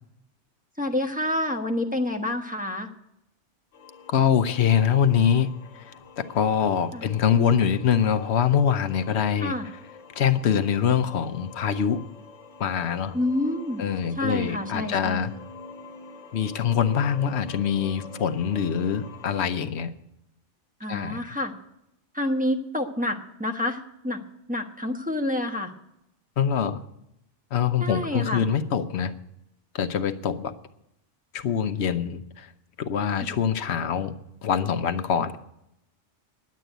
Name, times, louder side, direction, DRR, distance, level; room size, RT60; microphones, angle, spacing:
voice 1, 0.8-2.9 6.9-7.1 9.4-9.7 13.1-13.8 14.1-15.3 20.8-21.5 22.1-24.2 24.5-25.7 27.8-28.4, left 1 dB, 5° right, 3 dB, 1.0 m, -28 dB
sound 1, 3.7-19.4, left 3 dB, 90° left, 1.6 m, -46 dB
voice 2, 4.1-5.5 6.2-9.5 10.2-12.0 12.6-13.1 13.8-15.3 16.3-19.9 20.9-21.2 26.4-26.8 27.5-29.1 29.7-30.5 31.3-32.5 32.8-34.1 34.4-35.4, left 8 dB, 65° left, 11 dB, 1.0 m, -24 dB
10.5 x 8.4 x 9.1 m, 0.82 s
omnidirectional pair, 1.2 m